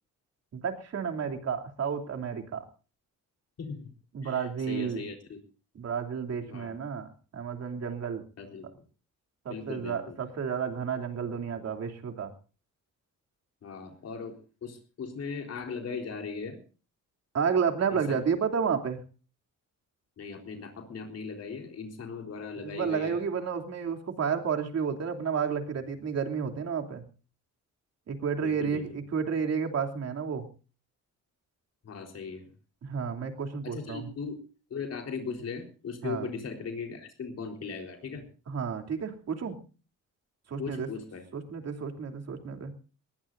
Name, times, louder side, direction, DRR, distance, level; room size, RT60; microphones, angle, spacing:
voice 1, 0.5-2.6 4.1-5.0 5.7-8.2 9.4-12.3 17.3-19.0 22.6-27.0 28.1-30.5 32.8-34.1 36.0-36.3 38.5-39.6 40.5-40.9 41.3-42.7, right 6 dB, 55° right, 4 dB, 3.1 m, -31 dB
voice 2, 3.6-3.9 4.2-5.4 6.5-6.8 8.4-8.6 9.5-10.2 13.6-16.6 17.9-18.2 20.2-23.2 28.4-29.0 31.8-32.5 33.6-34.4 34.7-38.2 40.6-41.2, left 5 dB, 50° left, 3 dB, 4.0 m, -38 dB
20.5 x 20.0 x 2.6 m, 0.36 s
cardioid pair, 145°, 31 cm